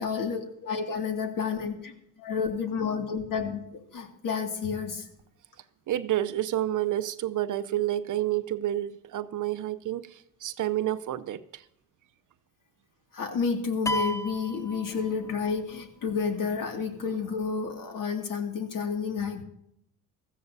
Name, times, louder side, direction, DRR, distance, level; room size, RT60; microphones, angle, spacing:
voice 1, 0.0-5.1 13.1-19.4, left 5 dB, 55° left, 2.2 m, -30 dB
voice 2, 5.9-11.6, right 13 dB, 50° right, 0.6 m, -29 dB
sound 1, 13.9-15.6, right 1 dB, 10° left, 0.3 m, -33 dB
15.5 x 14.0 x 2.7 m
supercardioid pair, 80°, 39 cm